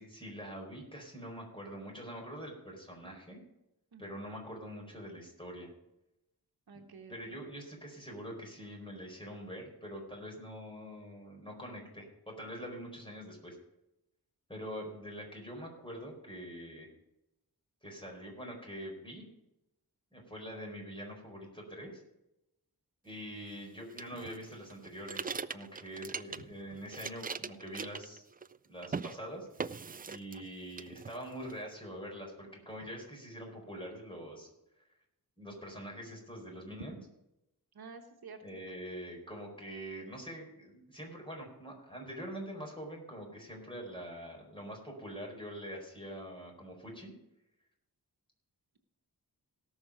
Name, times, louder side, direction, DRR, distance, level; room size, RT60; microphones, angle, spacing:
voice 1, 0.0-3.4 4.0-5.7 7.1-13.6 14.5-16.9 17.8-19.3 20.1-22.0 23.0-28.2 28.7-29.7 30.1-34.5 35.4-37.0 38.4-47.1, equal, 15° left, 0 dB, 4.5 m, -44 dB
voice 2, 3.9-4.2 6.7-7.4 26.4-26.5 37.7-38.6, right 4 dB, 70° right, 4 dB, 1.3 m, -51 dB
sound 1, 24.0-26.6 26.9-28.6 28.8-29.2 29.6-30.5 30.8-31.5, right 5 dB, 25° right, 0.3 m, -40 dB
17.5 x 6.2 x 5.1 m, 0.88 s
wide cardioid pair, 95°, 38 cm